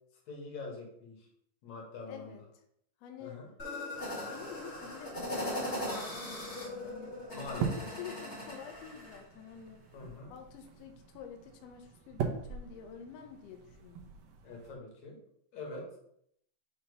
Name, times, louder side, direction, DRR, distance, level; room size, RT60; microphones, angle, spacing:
voice 1, 0.3-1.3 1.6-2.3 3.2-3.5 7.3-7.9 9.9-10.3 14.4-15.2 15.5-16.0, left 3 dB, 60° left, -1 dB, 2.6 m, -44 dB
voice 2, 2.1-2.4 3.0-3.4 4.2-7.2 7.5-7.7 8.0-9.9 10.3-14.0, left 8 dB, 85° left, 5 dB, 1.4 m, -48 dB
sound 1, 3.6-9.2, left 1 dB, 35° left, 1.2 m, -39 dB
sound 2, 3.9-14.8, right 6 dB, 75° right, 1.6 m, -43 dB
6.8 x 2.9 x 5.3 m, 0.72 s
omnidirectional pair, 3.8 m